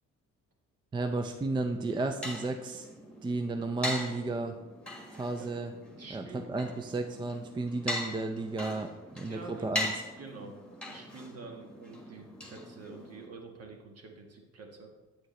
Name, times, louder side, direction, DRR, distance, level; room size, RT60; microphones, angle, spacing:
voice 1, 0.9-2.9 3.2-4.6 5.1-5.7 6.1-9.9, right 3 dB, 15° right, 6 dB, 0.4 m, -33 dB
sound 1, 1.6-13.3, left 1 dB, 5° left, 1.5 m, -41 dB
voice 2, 5.9-6.6 9.1-9.8 10.2-10.6 10.9-14.9, right 3 dB, 55° right, 2 dB, 1.4 m, -47 dB
8.0 x 6.3 x 3.1 m, 1.2 s
cardioid pair, 90°, 30 cm